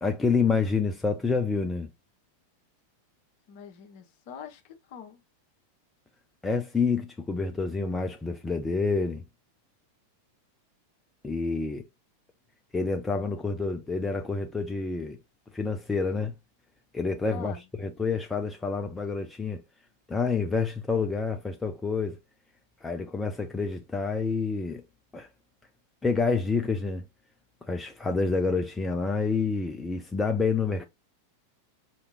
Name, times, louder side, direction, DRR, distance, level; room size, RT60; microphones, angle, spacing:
voice 1, 0.0-1.9 6.4-9.2 11.2-11.8 12.7-15.2 15.5-16.3 16.9-19.6 20.1-22.2 22.8-24.8 25.1-25.3 26.0-27.0 27.7-30.9, left 4 dB, 10° left, 0.5 m, -28 dB
voice 2, 3.5-5.2 17.3-17.6, left 8 dB, 45° left, 1.0 m, -43 dB
4.8 x 2.9 x 2.2 m
figure-of-eight pair, 90°, 0 cm